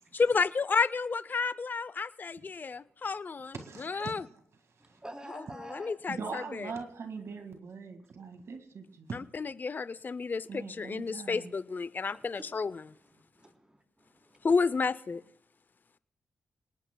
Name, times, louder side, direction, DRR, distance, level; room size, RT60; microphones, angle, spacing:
voice 1, 0.1-3.5 3.8-4.2 5.6-6.7 9.1-12.8 14.4-15.2, left 4 dB, 35° left, 15 dB, 0.5 m, -31 dB
voice 2, 3.5-4.4 4.9-5.0 6.1-9.2 10.5-11.5, right 4 dB, 65° right, 6 dB, 2.0 m, -41 dB
voice 3, 4.8-5.9 12.1-12.5 12.8-14.5, right 1 dB, 15° right, 2 dB, 3.6 m, -49 dB
28.0 x 19.0 x 2.3 m, 0.77 s
cardioid pair, 90°, 5 cm